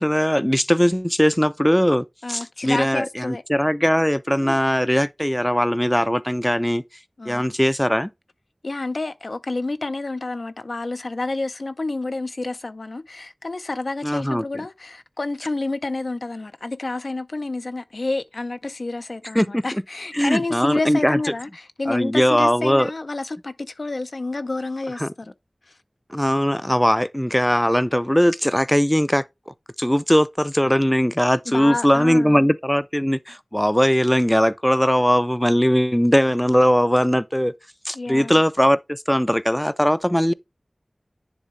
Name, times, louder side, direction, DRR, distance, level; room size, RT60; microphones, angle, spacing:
voice 1, 0.0-6.8 7.3-8.1 14.0-14.4 19.3-19.6 20.1-21.2 21.9-22.9 25.0-25.1 26.1-37.5 37.8-40.3, equal, 5° left, 0.3 m, -20 dB
voice 2, 2.2-3.4 7.2-7.4 8.6-25.3 25.7-25.8 31.5-32.5 37.9-38.4, left 2 dB, 80° left, 0.4 m, -29 dB
10.0 x 3.4 x 3.2 m
wide cardioid pair, 50°, 0 cm